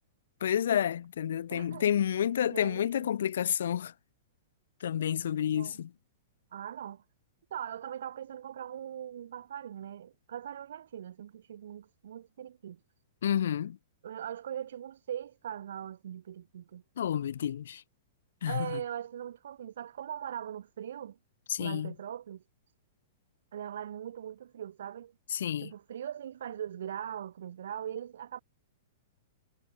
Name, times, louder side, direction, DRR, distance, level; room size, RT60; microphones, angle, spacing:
voice 1, 0.4-3.9 4.8-5.9 13.2-13.8 17.0-17.8 18.4-18.8 21.5-21.9 25.3-25.7, left 9 dB, 70° left, 1.2 m, -30 dB
voice 2, 1.5-1.9 2.4-3.1 5.5-5.8 6.5-7.0 7.5-12.8 14.0-16.8 18.5-21.2 21.6-22.4 23.5-25.1 25.6-28.4, right 10 dB, 70° right, 4.2 m, -40 dB
hypercardioid pair, 170°, 0 cm